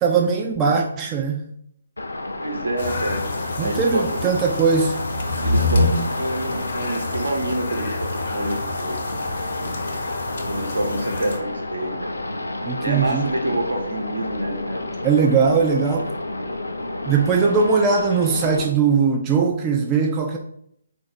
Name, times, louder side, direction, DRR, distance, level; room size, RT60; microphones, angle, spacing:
voice 1, 0.0-1.4 3.6-5.0 12.6-13.3 15.0-16.1 17.1-20.4, right 5 dB, 20° right, 1 dB, 0.4 m, -20 dB
sound 1, 2.0-18.6, left 2 dB, 75° left, 0.4 m, -30 dB
voice 2, 2.4-3.2 3.6-4.0 5.4-10.1 10.4-12.1 12.8-14.9 17.4-17.5, right 1 dB, 75° right, 2 dB, 0.9 m, -28 dB
sound 2, 2.8-11.4, left 2 dB, 55° left, 0.8 m, -27 dB
4.0 x 2.5 x 3.9 m, 0.71 s
figure-of-eight pair, 135°, 0 cm